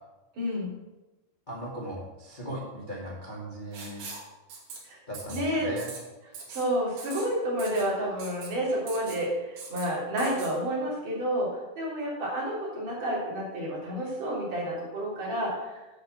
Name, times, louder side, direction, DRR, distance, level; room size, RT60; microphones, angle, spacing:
voice 1, 0.3-0.7 4.8-5.0 5.3-5.7 6.5-15.7, equal, 55° right, -6 dB, 4.9 m, -30 dB
voice 2, 1.5-4.0 5.1-5.9, right 1 dB, 25° left, -5 dB, 1.1 m, -38 dB
Writing, 3.7-4.2 4.5-4.8 5.1-5.4 5.8-6.0 6.3-6.6 7.0-7.3 7.6-7.8 8.2-8.5 8.9-9.2 9.6-9.8 10.2-10.5, right 4 dB, 75° right, 4.6 m, -41 dB
9.8 x 5.4 x 7.7 m, 1.1 s
omnidirectional pair, 4.5 m